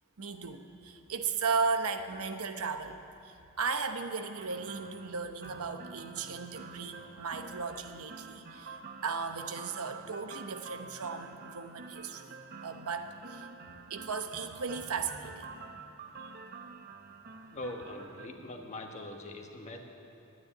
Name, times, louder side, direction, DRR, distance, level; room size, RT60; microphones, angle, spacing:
voice 1, 0.2-15.5 16.2-16.3, right 5 dB, 80° right, 7 dB, 0.9 m, -36 dB
sound 1, 4.4-18.3, right 4 dB, 45° right, 0.7 m, -48 dB
voice 2, 17.5-19.8, left 1 dB, 35° left, 2 dB, 1.4 m, -42 dB
13.0 x 9.5 x 9.9 m, 2.7 s
head